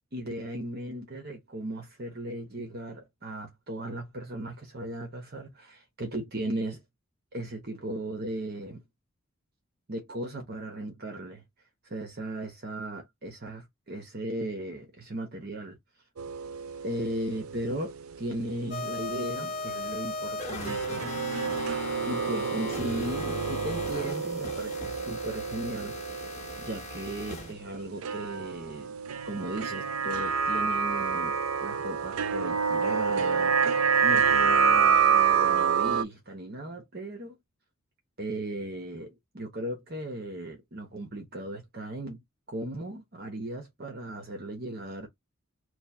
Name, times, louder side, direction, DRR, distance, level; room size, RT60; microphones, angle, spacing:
voice 1, 0.0-6.8 7.3-8.8 9.9-11.4 11.8-15.8 16.8-21.1 22.1-26.3 26.6-28.9 29.2-33.7 34.0-37.4 38.2-42.2 42.5-45.1, right 1 dB, 50° right, 1.0 m, -37 dB
sound 1, 16.2-18.7 19.0-19.1 20.6-27.1 28.0-36.0, right 6 dB, 90° right, 0.4 m, -27 dB
sound 2, 18.7-27.5, left 1 dB, 30° left, 1.2 m, -37 dB
3.2 x 2.3 x 4.2 m
head